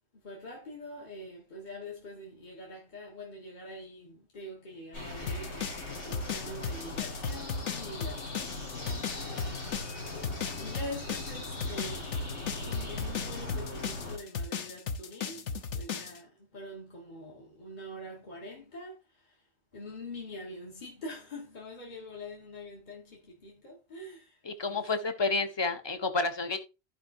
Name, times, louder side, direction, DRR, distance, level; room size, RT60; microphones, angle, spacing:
voice 1, 0.2-9.9 10.6-12.1 12.6-15.4 15.7-19.4 19.7-24.9, left 1 dB, 40° left, 1.7 m, -45 dB
sound 1, 4.9-14.2, left 2 dB, 70° left, 2.7 m, -40 dB
sound 2, 5.3-16.2, left 6 dB, 85° left, 1.3 m, -35 dB
voice 2, 24.5-26.6, left 3 dB, 25° left, 0.9 m, -30 dB
14.5 x 5.0 x 2.6 m
omnidirectional pair, 1.2 m